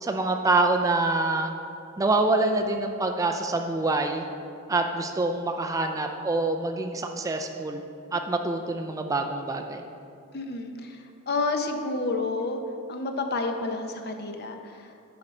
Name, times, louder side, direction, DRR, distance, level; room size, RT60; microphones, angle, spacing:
voice 1, 0.0-1.5 2.0-4.2 4.7-7.8 8.1-9.8, right 2 dB, 15° right, 4 dB, 0.3 m, -26 dB
voice 2, 10.3-10.7 11.3-12.6 12.9-14.5, left 3 dB, 50° left, 5 dB, 0.6 m, -29 dB
10.0 x 5.0 x 4.3 m, 2.6 s
head